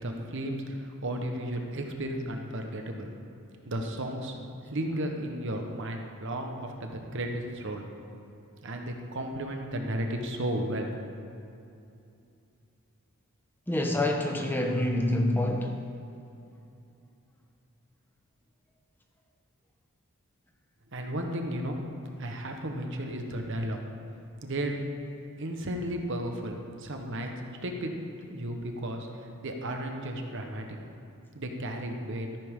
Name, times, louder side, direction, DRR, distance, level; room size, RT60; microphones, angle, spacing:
voice 1, 0.0-3.1 3.7-4.4 4.6-7.8 8.6-11.1 20.9-21.8 22.2-23.8 24.4-24.8 25.4-27.3 27.6-27.9 28.2-29.1 29.4-30.7 31.3-32.3, right 1 dB, 55° right, 3 dB, 1.1 m, -34 dB
voice 2, 13.7-15.7, left 1 dB, 10° left, 2 dB, 0.9 m, -26 dB
13.5 x 10.0 x 3.7 m, 2.6 s
head